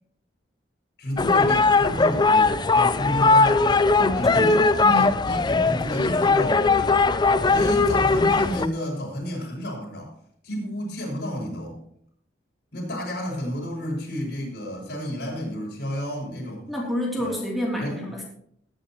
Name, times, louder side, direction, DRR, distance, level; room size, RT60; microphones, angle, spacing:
voice 1, 1.0-7.0 7.5-10.1 10.4-11.8 12.7-16.6 17.2-17.3 17.7-18.0, equal, 65° left, -2 dB, 6.6 m, -31 dB
sound 1, 1.2-8.7, left 3 dB, 25° left, 0.5 m, -19 dB
voice 2, 3.9-5.0 16.7-18.2, left 1 dB, ahead, -5 dB, 3.1 m, -29 dB
19.5 x 9.9 x 3.1 m, 0.66 s
head